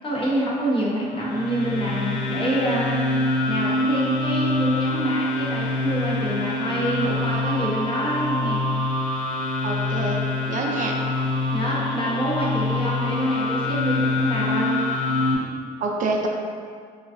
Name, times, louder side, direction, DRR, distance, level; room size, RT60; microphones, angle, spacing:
voice 1, 0.0-3.1 3.5-8.6 11.5-14.9, right 1 dB, 30° left, -6 dB, 0.8 m, -27 dB
sound 1, 1.0-15.3, left 2 dB, 75° left, 0.5 m, -25 dB
voice 2, 9.6-10.2 10.5-10.9 15.8-16.3, right 3 dB, 50° right, 0 dB, 0.4 m, -26 dB
3.7 x 2.4 x 2.5 m, 2.1 s
cardioid pair, 110°, 17 cm